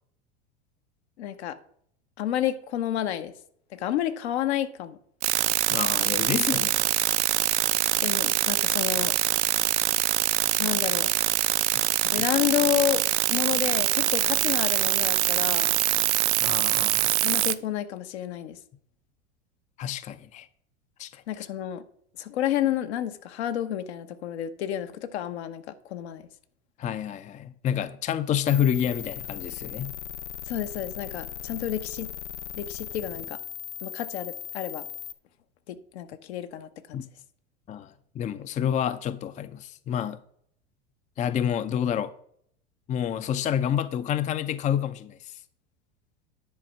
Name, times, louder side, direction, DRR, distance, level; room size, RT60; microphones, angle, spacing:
voice 1, 1.2-1.6 2.2-3.3 3.7-5.0 8.0-9.2 10.6-11.1 12.0-15.7 17.2-18.6 21.3-21.8 22.2-26.3 30.5-32.1 32.6-33.4 33.8-34.8 35.7-37.0, left 11 dB, 70° left, 1.1 m, -30 dB
sound 1, 5.2-17.5, right 16 dB, 75° right, 0.6 m, -24 dB
voice 2, 5.7-6.9 12.1-12.2 16.4-17.1 19.8-20.5 21.0-21.5 26.8-30.0 36.9-37.0 37.7-40.2 41.2-42.1 42.9-45.4, left 9 dB, 20° left, 0.5 m, -29 dB
sound 2, 28.5-35.1, left 11 dB, 90° left, 0.7 m, -38 dB
10.0 x 4.3 x 5.9 m
hypercardioid pair, 95°, 34 cm